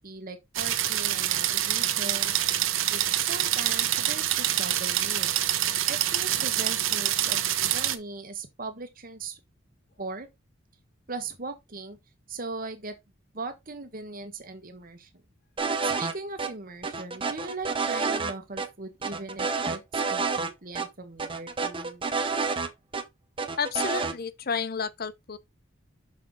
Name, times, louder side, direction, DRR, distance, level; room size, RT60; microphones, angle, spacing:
voice 1, 0.0-2.3 2.9-5.3 5.8-7.4 7.7-9.4 10.0-10.3 11.1-12.0 12.3-12.9 13.3-15.1 15.8-22.0, right 3 dB, 45° right, 1.4 m, -39 dB
sound 1, 0.5-8.0, right 12 dB, 80° right, 0.9 m, -26 dB
sound 2, 15.6-16.1 16.4-16.5 16.8-18.3 18.6-18.7 19.0-20.5 20.8-20.9 21.2-23.0 23.4-24.1, right 4 dB, 25° right, 0.9 m, -29 dB
voice 2, 23.6-25.4, left 6 dB, 50° left, 0.7 m, -31 dB
6.6 x 5.8 x 3.8 m
head